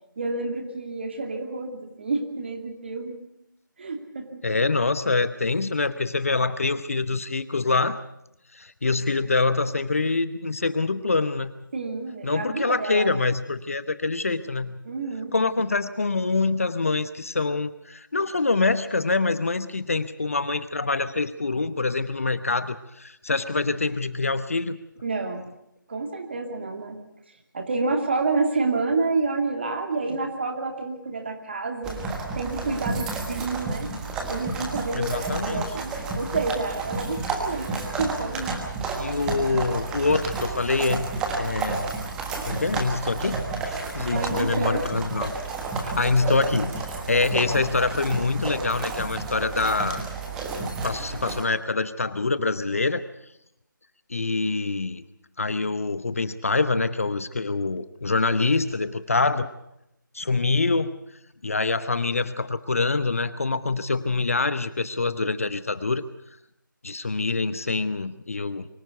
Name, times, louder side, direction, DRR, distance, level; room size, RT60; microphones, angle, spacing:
voice 1, 0.2-3.2 3.8-4.4 11.7-13.2 14.9-15.3 25.0-25.4 25.9-27.0 27.5-32.0 32.3-33.9 34.3-38.7 44.1-45.0 45.8-46.6, right 3 dB, 30° right, 4 dB, 2.6 m, -29 dB
voice 2, 4.4-8.0 8.5-11.5 12.2-14.8 15.3-24.8 34.9-35.7 39.0-41.8 42.4-45.3 45.8-46.8 47.1-50.0 50.6-53.0 54.1-55.0 55.4-59.5 60.1-60.9 61.4-66.0 66.8-68.7, left 3 dB, 40° left, 13 dB, 0.9 m, -25 dB
sound 1, 31.8-51.4, right 3 dB, 5° right, 1.3 m, -31 dB
24.0 x 15.0 x 8.2 m, 0.82 s
figure-of-eight pair, 160°, 11 cm